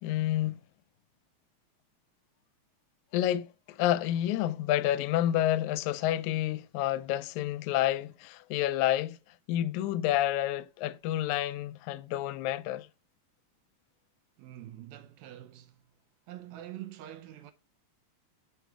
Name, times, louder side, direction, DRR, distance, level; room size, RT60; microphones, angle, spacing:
voice 1, 0.0-0.6 3.1-9.2 9.5-12.9, left 13 dB, 85° left, 1.9 m, -29 dB
voice 2, 14.4-15.9 16.3-17.5, right 13 dB, 75° right, 1.8 m, -45 dB
7.1 x 5.0 x 4.6 m
omnidirectional pair, 3.3 m